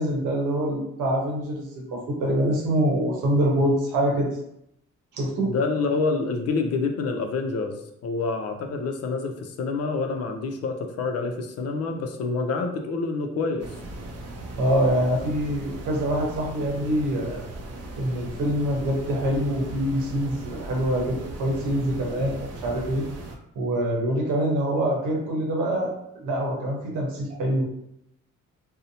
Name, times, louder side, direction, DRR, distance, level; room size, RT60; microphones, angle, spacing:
voice 1, 0.0-4.3 5.1-5.5 14.6-17.4 18.0-23.0 23.5-25.9 26.2-27.6, right 1 dB, 85° right, -1 dB, 0.9 m, -25 dB
voice 2, 5.4-13.8, left 4 dB, 55° left, 4 dB, 0.5 m, -27 dB
sound 1, 13.6-23.4, right 2 dB, 55° right, 0.5 m, -38 dB
2.7 x 2.0 x 2.7 m, 0.78 s
cardioid pair, 90°, 30 cm